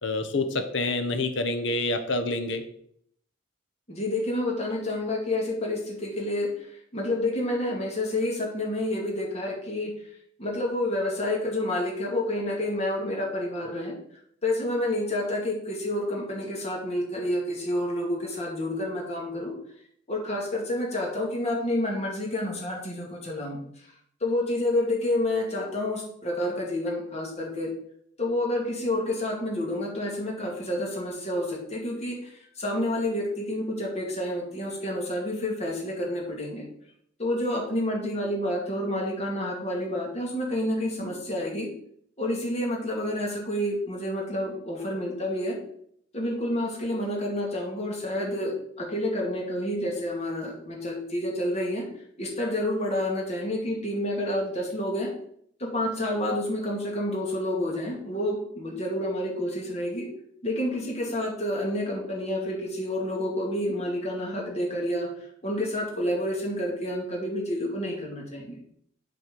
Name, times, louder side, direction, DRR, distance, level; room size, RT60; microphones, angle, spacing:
voice 1, 0.0-2.6, left 2 dB, 60° left, 7 dB, 1.0 m, -27 dB
voice 2, 3.9-9.9 10.4-14.0 14.4-19.6 20.1-23.6 24.2-27.7 28.2-36.7 37.2-41.7 42.2-45.6 46.1-51.9 52.2-55.1 55.6-60.1 60.4-65.1 65.4-68.6, left 1 dB, 35° left, -1 dB, 2.1 m, -29 dB
7.6 x 4.3 x 6.8 m, 0.67 s
head